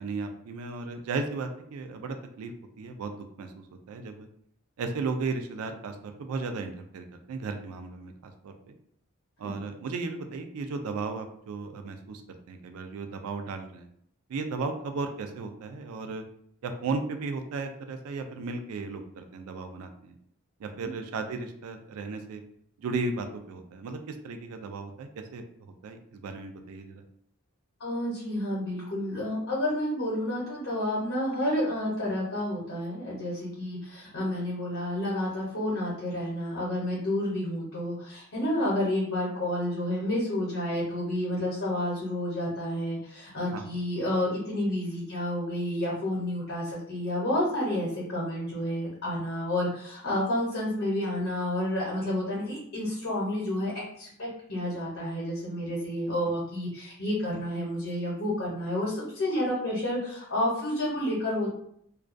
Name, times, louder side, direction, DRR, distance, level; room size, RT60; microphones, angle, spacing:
voice 1, 0.0-2.5 2.8-4.3 4.8-8.7 9.4-13.9 14.3-16.2 16.6-20.2 20.6-22.4 22.8-27.0 43.5-43.7, right 4 dB, 80° right, 7 dB, 0.3 m, -35 dB
voice 2, 27.8-61.5, left 1 dB, 60° left, -6 dB, 0.7 m, -30 dB
2.3 x 2.2 x 2.4 m, 0.69 s
head